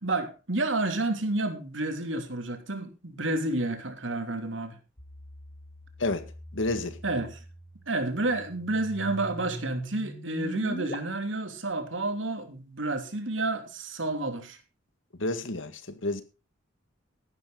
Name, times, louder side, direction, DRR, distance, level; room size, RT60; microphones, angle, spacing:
voice 1, 0.0-4.8 7.0-7.4 7.9-14.6, right 2 dB, 80° right, 3.0 m, -30 dB
sound 1, 5.0-11.0, left 1 dB, 45° left, 2.6 m, -42 dB
voice 2, 6.5-7.0 15.2-16.2, left 2 dB, 85° left, 2.0 m, -30 dB
15.0 x 12.0 x 4.0 m
head